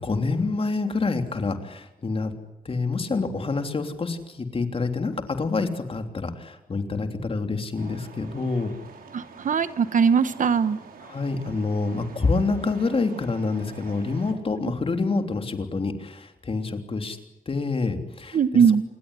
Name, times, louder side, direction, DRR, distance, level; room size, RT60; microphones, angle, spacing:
voice 1, 0.0-2.3 2.6-8.7 11.0-17.2 17.5-18.4, left 3 dB, 40° left, 6 dB, 3.3 m, -27 dB
sound 1, 7.8-14.3, right 5 dB, 85° right, 5.2 m, -46 dB
voice 2, 9.1-10.8 18.3-18.8, right 6 dB, 60° right, 13 dB, 1.3 m, -20 dB
28.0 x 20.5 x 9.8 m, 0.97 s
cardioid pair, 105°, 15 cm